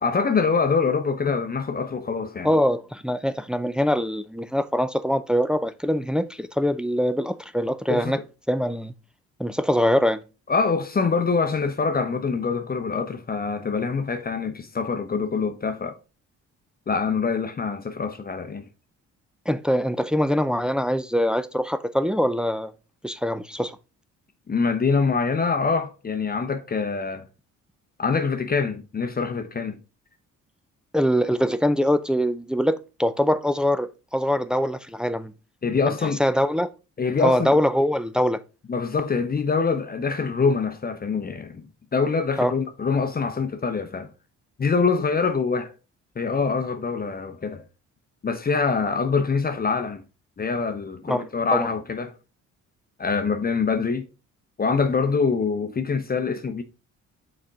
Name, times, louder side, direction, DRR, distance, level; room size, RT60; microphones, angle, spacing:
voice 1, 0.0-2.5 7.9-8.1 10.5-16.0 16.9-18.7 24.5-27.3 28.0-29.8 35.6-36.2 37.0-37.6 38.7-41.6 41.9-44.1 44.6-45.7 46.2-47.6 48.2-50.0 50.4-52.1 53.0-54.1 54.6-56.6, left 5 dB, 30° left, 0.8 m, -24 dB
voice 2, 2.4-8.2 8.5-8.9 9.4-10.2 19.5-22.7 23.0-23.8 30.9-35.3 35.9-36.7 37.2-38.4 42.4-42.5 51.1-51.2 51.5-51.7, equal, 5° right, 0.5 m, -23 dB
6.4 x 4.3 x 3.6 m
cardioid pair, 90°, 30 cm